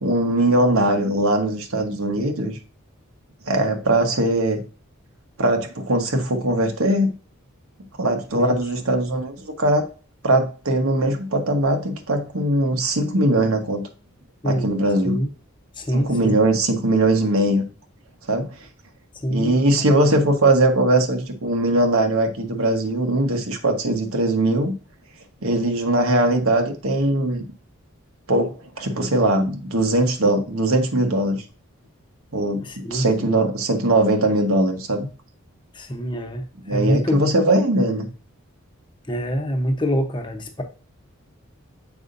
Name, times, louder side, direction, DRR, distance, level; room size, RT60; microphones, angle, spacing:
voice 1, 0.0-2.6 3.5-4.6 5.4-7.1 8.0-9.8 10.2-13.9 14.4-15.2 15.9-17.6 18.2-18.5 19.3-24.7 25.4-27.5 28.3-31.4 32.3-35.1 36.6-38.1, right 1 dB, 80° right, 4 dB, 1.3 m, -20 dB
voice 2, 15.8-16.4 19.2-19.6 32.6-33.3 35.7-37.2 39.1-40.6, equal, 20° left, 4 dB, 0.9 m, -25 dB
7.1 x 5.4 x 2.6 m, 0.36 s
head